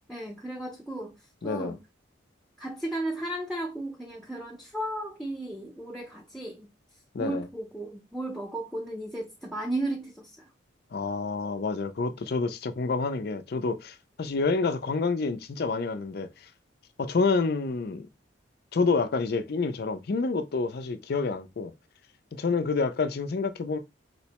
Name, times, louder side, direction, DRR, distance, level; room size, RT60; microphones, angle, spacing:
voice 1, 0.1-1.1 1.4-1.8 2.6-6.7 7.2-10.5, right 1 dB, ahead, 0.5 m, -34 dB
voice 2, 1.4-1.8 7.1-7.5 10.9-16.3 17.0-18.1 18.7-21.7 22.3-23.8, left 4 dB, 50° left, 0.4 m, -28 dB
4.2 x 2.1 x 2.9 m
head